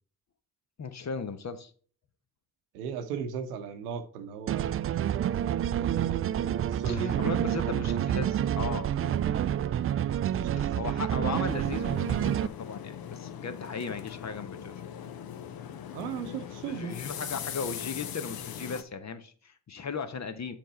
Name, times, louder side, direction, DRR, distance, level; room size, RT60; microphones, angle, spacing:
voice 1, 0.8-1.7 6.8-9.2 10.6-14.8 16.7-20.6, left 5 dB, 35° left, 1.0 m, -37 dB
voice 2, 2.7-4.8 5.7-7.5 10.3-10.9 15.9-17.0, right 6 dB, 85° right, 0.9 m, -37 dB
sound 1, 4.5-12.5, right 10 dB, 30° right, 0.4 m, -28 dB
sound 2, 11.5-18.8, left 9 dB, 55° left, 0.8 m, -40 dB
7.5 x 5.2 x 4.2 m
hypercardioid pair, 40°, 45 cm